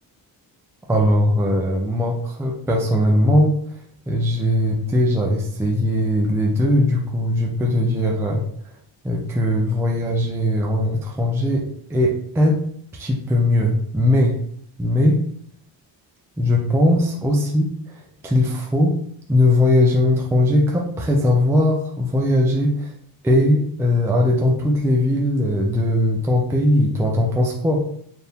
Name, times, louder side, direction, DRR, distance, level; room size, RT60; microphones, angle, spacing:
voice 1, 0.9-3.6 4.1-8.4 9.0-12.6 12.9-14.4 14.8-15.2 16.4-19.0 19.3-22.9 23.2-27.9, left 1 dB, 5° right, -1 dB, 0.4 m, -19 dB
4.4 x 2.6 x 3.4 m, 0.64 s
wide cardioid pair, 165°, 44 cm